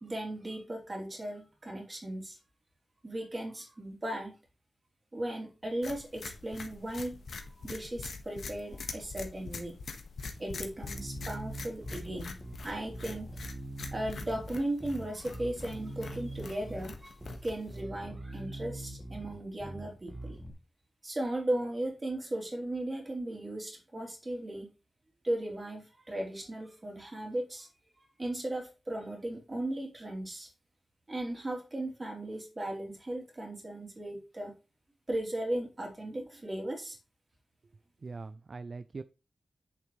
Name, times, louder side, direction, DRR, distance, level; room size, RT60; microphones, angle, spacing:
voice 1, 0.0-2.4 3.0-4.3 5.1-7.2 7.6-9.7 10.4-12.3 12.6-13.3 13.9-17.1 17.4-20.4 21.0-24.7 25.2-27.7 28.0-30.5 31.1-34.5 35.1-37.0, right 1 dB, 25° right, 1 dB, 3.2 m, -36 dB
sound 1, 5.8-17.8, left 4 dB, 80° left, 1.5 m, -44 dB
Bass guitar, 10.9-20.5, right 1 dB, 10° right, 1.7 m, -43 dB
voice 2, 38.0-39.0, right 4 dB, 45° right, 13 dB, 0.4 m, -42 dB
8.5 x 7.2 x 3.2 m, 0.31 s
wide cardioid pair, 135°, 0 cm